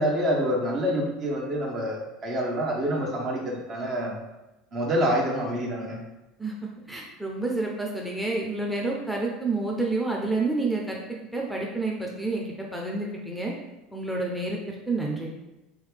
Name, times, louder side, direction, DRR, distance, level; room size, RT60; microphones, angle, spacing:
voice 1, 0.0-4.2 4.7-6.0, equal, 45° right, -1 dB, 1.0 m, -27 dB
voice 2, 6.4-11.0 11.3-13.5 13.9-15.3, right 3 dB, ahead, -1 dB, 0.6 m, -29 dB
3.6 x 3.1 x 3.3 m, 0.99 s
hypercardioid pair, 75°, 0 cm